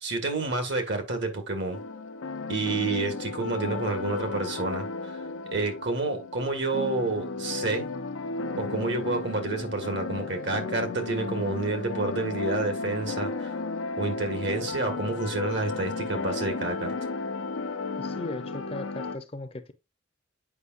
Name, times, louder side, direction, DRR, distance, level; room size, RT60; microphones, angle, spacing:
voice 1, 0.0-1.8 2.5-5.2 5.5-7.9 8.6-13.6 14.0-16.9, right 3 dB, 60° right, 1.7 m, -29 dB
crappy lofi progression, 1.7-19.2, left 3 dB, 80° left, 0.7 m, -34 dB
voice 2, 17.9-19.7, left 2 dB, 30° left, 0.6 m, -37 dB
8.3 x 5.4 x 2.5 m
head